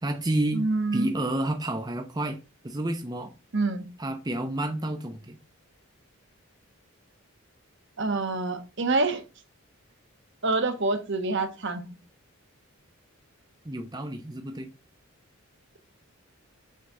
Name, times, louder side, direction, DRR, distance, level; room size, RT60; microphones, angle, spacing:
voice 1, 0.0-0.6 0.9-2.4 2.6-3.3 4.0-5.4 13.6-14.7, right 1 dB, 20° right, 0.7 m, -30 dB
voice 2, 0.5-1.1 3.5-3.9 8.0-9.2 10.4-12.0, right 3 dB, 55° right, 1.1 m, -26 dB
6.5 x 4.0 x 6.1 m
head